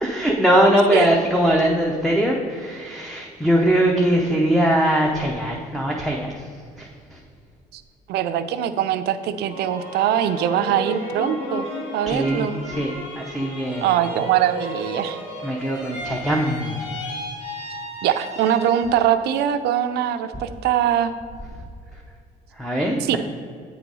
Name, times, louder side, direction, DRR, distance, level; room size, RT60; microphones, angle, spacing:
voice 1, 0.0-6.5 6.8-7.2 12.1-13.9 15.4-16.9 21.9-22.0 22.5-23.2, right 1 dB, ahead, -1 dB, 0.6 m, -21 dB
voice 2, 8.1-11.7 11.9-12.6 13.8-15.2 18.0-21.1 23.1-23.2, right 10 dB, 75° right, 10 dB, 0.5 m, -22 dB
sound 1, 9.4-19.2 19.6-20.3, left 1 dB, 85° left, 1.8 m, -34 dB
8.2 x 3.9 x 4.8 m, 2.2 s
cardioid pair, 110°, 17 cm